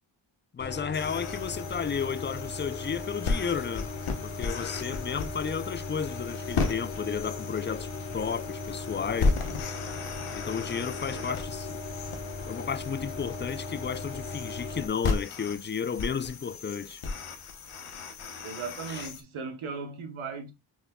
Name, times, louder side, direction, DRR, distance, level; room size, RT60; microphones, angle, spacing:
voice 1, 0.5-3.9 4.2-9.4 10.3-11.7 12.5-17.0 18.9-19.0, left 6 dB, 25° left, 0.3 m, -33 dB
sound 1, 0.6-14.9, left 3 dB, 70° left, 1.3 m, -38 dB
sound 2, 0.9-19.2, left 4 dB, 90° left, 1.0 m, -35 dB
voice 2, 11.1-11.4 18.4-20.5, right 5 dB, 80° right, 1.0 m, -37 dB
6.4 x 3.4 x 2.2 m
cardioid pair, 50°, 49 cm